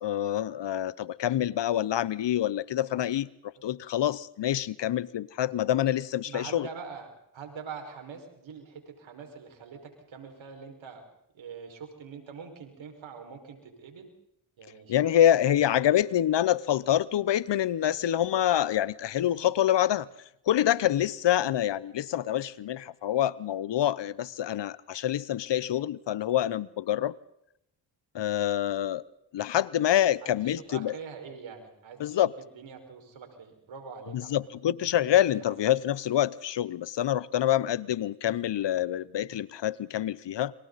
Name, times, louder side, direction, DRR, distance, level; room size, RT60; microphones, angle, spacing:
voice 1, 0.0-3.3 3.6-6.7 14.9-20.1 20.5-27.1 28.1-29.0 29.3-30.9 32.0-32.3 34.1-40.5, left 11 dB, 60° left, 0.9 m, -26 dB
voice 2, 6.3-11.0 11.3-14.1 14.6-15.9 21.3-21.6 30.2-34.4 34.8-34.9 35.3-35.4, right 6 dB, 75° right, 5.5 m, -44 dB
30.0 x 24.5 x 4.2 m
supercardioid pair, 50°, 47 cm